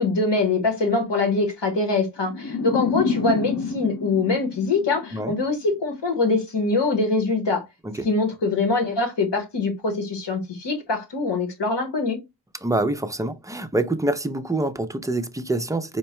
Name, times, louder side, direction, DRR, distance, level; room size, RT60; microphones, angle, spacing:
voice 1, 0.0-7.6 8.0-12.2, left 3 dB, 75° left, 1.3 m, -23 dB
sound 1, 2.3-5.5, left 5 dB, 45° left, 0.7 m, -28 dB
voice 2, 12.6-16.0, right 2 dB, 10° right, 0.4 m, -26 dB
4.5 x 2.1 x 2.9 m
wide cardioid pair, 90°, 43 cm